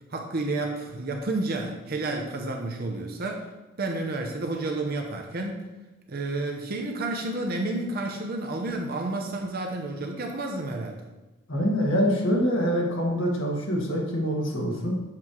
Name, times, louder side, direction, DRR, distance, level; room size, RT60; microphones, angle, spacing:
voice 1, 0.1-3.5 3.8-5.6 6.1-11.0, right 2 dB, 45° right, 2 dB, 0.7 m, -30 dB
voice 2, 11.5-14.9, equal, 60° left, -2 dB, 1.7 m, -25 dB
7.5 x 3.2 x 5.9 m, 1.1 s
head